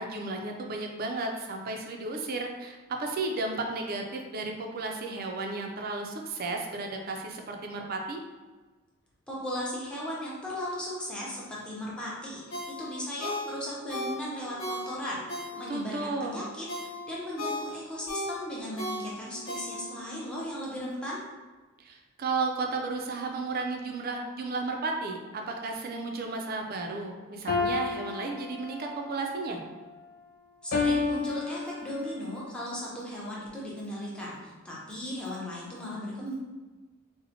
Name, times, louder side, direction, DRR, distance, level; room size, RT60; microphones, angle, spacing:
voice 1, 0.0-8.2 15.7-16.4 21.8-29.6, right 3 dB, 45° right, 2 dB, 0.4 m, -33 dB
voice 2, 9.3-21.2 30.6-36.3, equal, 5° left, -6 dB, 0.6 m, -37 dB
Ringtone, 12.5-16.0 16.4-20.1 20.5-20.6, left 1 dB, 70° left, 0.9 m, -36 dB
sound 1, 27.5-29.0 30.7-32.2, left 4 dB, 45° left, 0.3 m, -30 dB
4.0 x 2.1 x 2.8 m, 1.3 s
head